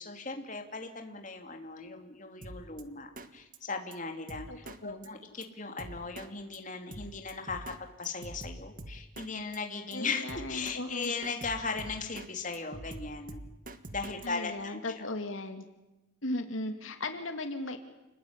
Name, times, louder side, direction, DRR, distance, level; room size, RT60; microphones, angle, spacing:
voice 1, 0.0-7.7 8.0-13.4 13.9-15.1, left 4 dB, 40° left, 4 dB, 3.1 m, -38 dB
Drum kit, 2.4-2.8 3.2-3.3 3.5-3.6 3.9-4.0 4.3-4.8 5.0-5.1 5.4-5.5 5.8-6.3 6.5-6.6 6.9-7.8 8.0-9.3 9.5-9.6 9.9-10.0 10.3-10.8 11.0-12.3 12.5-14.3, right 1 dB, 45° right, 1.5 m, -44 dB
voice 2, 4.5-5.1 9.9-11.1 14.2-15.7 16.2-17.8, left 2 dB, 85° left, 6 dB, 2.5 m, -37 dB
29.5 x 20.0 x 9.9 m, 1.0 s
head